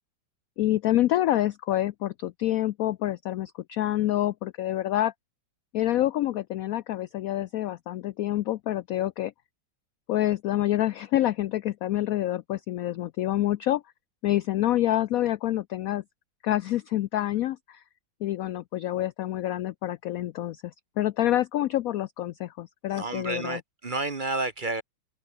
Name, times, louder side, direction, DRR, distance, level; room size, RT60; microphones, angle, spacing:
voice 1, 0.6-5.1 5.7-9.3 10.1-13.8 14.2-16.0 16.4-17.8 18.2-23.6, left 14 dB, 85° left, 0.7 m, -27 dB
voice 2, 22.9-24.8, right 2 dB, 30° right, 1.1 m, -30 dB
omnidirectional pair, 2.0 m